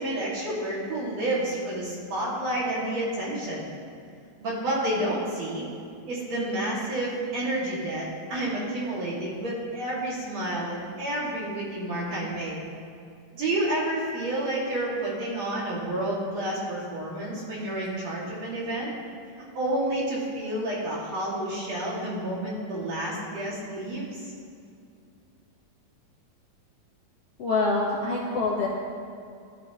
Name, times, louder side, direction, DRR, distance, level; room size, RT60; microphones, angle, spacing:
voice 1, 0.0-3.6 4.4-5.7 6.1-12.6 13.3-18.9 19.5-24.3, right 1 dB, 50° right, -6 dB, 3.3 m, -30 dB
voice 2, 27.4-28.7, left 3 dB, 55° left, -5 dB, 1.8 m, -25 dB
18.0 x 12.0 x 3.1 m, 2.4 s
omnidirectional pair, 4.2 m